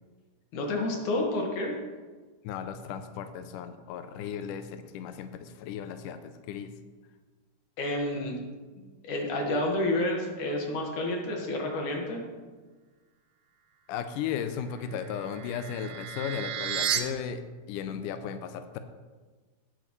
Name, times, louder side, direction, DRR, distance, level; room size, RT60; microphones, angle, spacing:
voice 1, 0.5-1.8 7.8-8.4 9.0-12.2, left 1 dB, 60° left, 0 dB, 3.0 m, -29 dB
voice 2, 2.4-6.7 13.9-17.4 17.7-18.8, left 8 dB, 85° left, 9 dB, 1.9 m, -35 dB
sound 1, 14.7-17.0, right 9 dB, 75° right, 2.3 m, -33 dB
18.0 x 8.1 x 3.2 m, 1.4 s
omnidirectional pair, 4.3 m